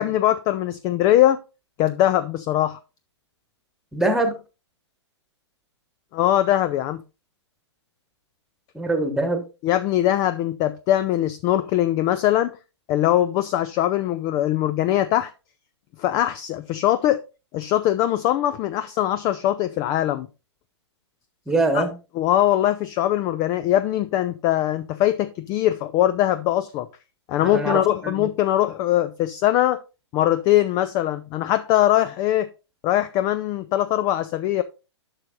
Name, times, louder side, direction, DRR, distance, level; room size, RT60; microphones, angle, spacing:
voice 1, 0.0-1.4 1.8-2.8 6.1-7.0 9.6-12.5 12.9-15.3 16.0-17.2 17.5-20.3 21.7-21.8 22.2-26.9 27.3-29.8 30.1-32.5 32.8-34.6, left 13 dB, 25° left, 0.3 m, -21 dB
voice 2, 3.9-4.4 8.7-9.4 21.5-21.9 27.4-28.3, right 2 dB, 5° right, 1.4 m, -23 dB
11.5 x 6.4 x 2.5 m
figure-of-eight pair, 115°, 15 cm